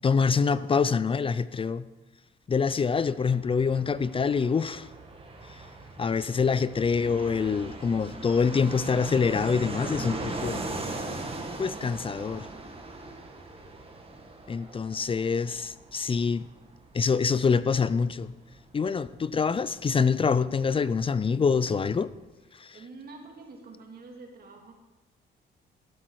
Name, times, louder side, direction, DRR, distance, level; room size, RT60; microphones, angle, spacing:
voice 1, 0.0-1.9 2.5-4.9 6.0-10.7 11.6-12.5 14.5-16.5 16.9-18.3 18.7-22.1 22.6-22.8, left 5 dB, 25° left, 16 dB, 0.4 m, -25 dB
Fixed-wing aircraft airplane, 2.5-20.9 21.2-21.3 21.5-22.2, right 2 dB, 30° right, 1.9 m, -40 dB
voice 2, 22.5-24.7, right 3 dB, 50° right, 1 dB, 2.5 m, -47 dB
14.0 x 7.8 x 4.7 m, 1.1 s
cardioid pair, 90°, 20 cm